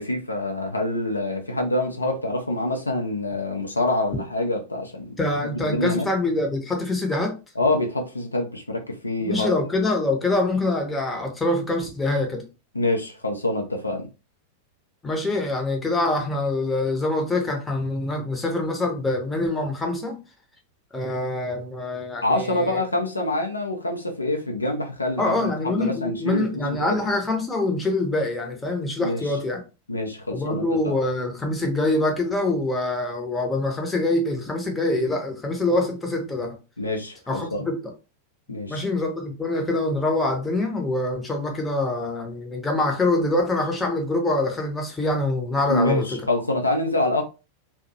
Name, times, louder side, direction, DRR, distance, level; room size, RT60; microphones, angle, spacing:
voice 1, 0.0-5.1 5.4-6.1 7.6-9.5 12.7-14.1 22.2-27.0 29.0-29.3 29.9-31.0 36.8-37.7 38.5-38.8 45.7-47.2, left 2 dB, 80° left, 0.4 m, -26 dB
voice 2, 5.2-7.4 9.2-12.4 15.0-20.2 20.9-22.8 25.2-29.6 30.3-36.6 37.3-37.8 38.7-46.2, left 2 dB, 10° left, 0.7 m, -25 dB
2.5 x 2.1 x 2.6 m
figure-of-eight pair, 90°, 0 cm